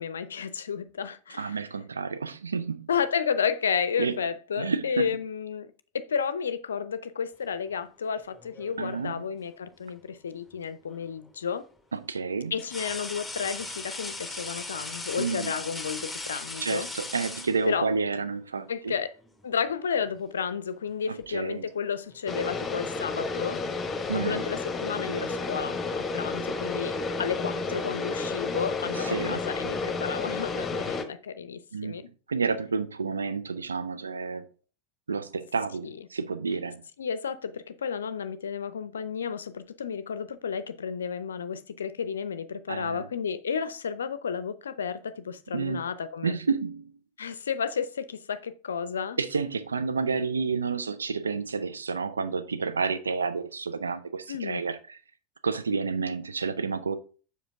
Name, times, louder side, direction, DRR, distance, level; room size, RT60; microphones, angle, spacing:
voice 1, 0.0-1.6 2.9-11.7 12.5-16.9 17.7-17.9 18.7-19.1 19.4-23.6 24.1-32.0 35.8-35.9 37.0-46.4 47.2-49.2 54.3-54.6, left 6 dB, 70° left, 0.5 m, -32 dB
voice 2, 1.4-2.9 4.0-4.2 4.6-5.1 8.8-9.2 11.9-12.6 15.2-15.6 16.6-18.9 21.1-21.7 24.1-24.4 28.9-29.4 31.7-34.5 35.1-36.8 42.7-43.1 45.5-45.9 46.2-46.9 49.2-55.0 55.4-57.0, right 5 dB, 75° right, 0.5 m, -30 dB
sound 1, 8.3-9.1 10.9-11.1 12.6-18.1 19.2-19.5 19.8-20.6 20.9-21.2 22.1-24.7, left 2 dB, 5° left, 1.3 m, -40 dB
sound 2, 22.3-31.0, left 3 dB, 20° left, 1.1 m, -31 dB
6.7 x 5.0 x 3.6 m
figure-of-eight pair, 85°, 0 cm